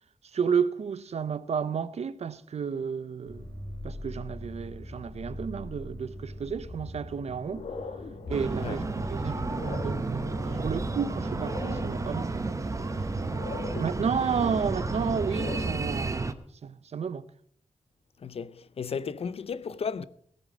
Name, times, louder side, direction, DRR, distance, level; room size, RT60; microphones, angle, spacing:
voice 1, 0.3-3.5 3.8-7.7 8.3-12.4 13.8-17.2, right 6 dB, 65° right, 0.6 m, -32 dB
sound 1, 3.3-11.6, left 1 dB, 15° left, 3.1 m, -42 dB
sound 2, 7.2-15.9, left 4 dB, 85° left, 1.5 m, -41 dB
Breathing, 8.3-16.3, right 3 dB, 25° right, 0.7 m, -32 dB
voice 2, 18.2-20.0, left 6 dB, 55° left, 0.6 m, -34 dB
17.0 x 8.8 x 6.1 m
wide cardioid pair, 175°, 12 cm